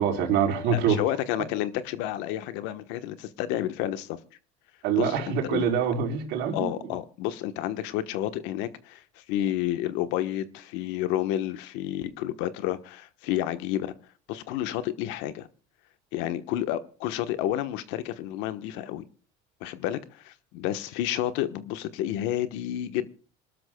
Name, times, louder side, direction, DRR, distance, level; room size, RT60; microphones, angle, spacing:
voice 1, 0.0-1.0 4.8-6.9, right 7 dB, 65° right, 4.2 m, -25 dB
voice 2, 0.7-4.2 5.0-5.2 5.5-5.7 6.5-9.0 9.3-13.9 14.3-15.5 16.1-19.0 19.6-23.1, left 12 dB, 75° left, 1.2 m, -30 dB
26.5 x 12.5 x 2.3 m
cardioid pair, 120°, 19 cm